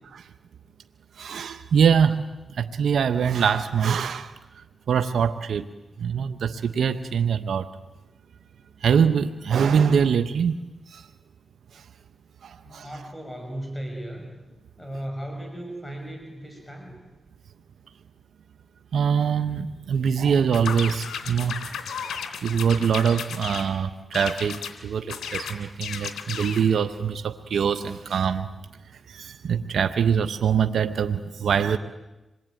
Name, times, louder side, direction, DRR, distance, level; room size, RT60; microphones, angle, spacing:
voice 1, 1.2-2.2 2.5-4.3 4.9-5.7 6.0-7.7 8.8-10.6 10.9-11.1 11.7-11.8 12.4-12.9 18.9-21.6 22.4-28.5 29.1-31.8, right 7 dB, 85° right, 9 dB, 0.9 m, -23 dB
voice 2, 12.6-14.3 14.8-17.0, right 1 dB, 20° left, 2 dB, 6.2 m, -36 dB
sound 1, 20.5-23.7 24.1-24.8 25.1-26.7, left 7 dB, 90° left, 2.9 m, -34 dB
26.5 x 22.0 x 9.2 m, 1.0 s
cardioid pair, 50°, 0 cm